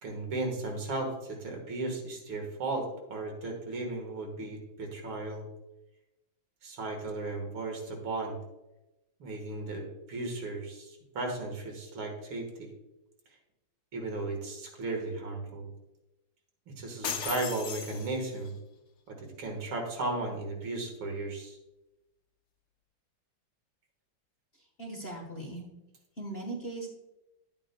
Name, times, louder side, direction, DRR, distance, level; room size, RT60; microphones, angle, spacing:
voice 1, 0.0-5.4 6.6-8.4 9.2-12.7 13.9-15.7 16.7-18.5 19.1-21.6, right 2 dB, 70° right, 2 dB, 2.3 m, -35 dB
sound 1, 17.0-18.5, left 7 dB, 75° left, 0.6 m, -37 dB
voice 2, 24.6-25.7 26.2-26.9, right 2 dB, 35° left, -1 dB, 1.2 m, -39 dB
11.0 x 8.6 x 2.2 m, 0.97 s
omnidirectional pair, 2.3 m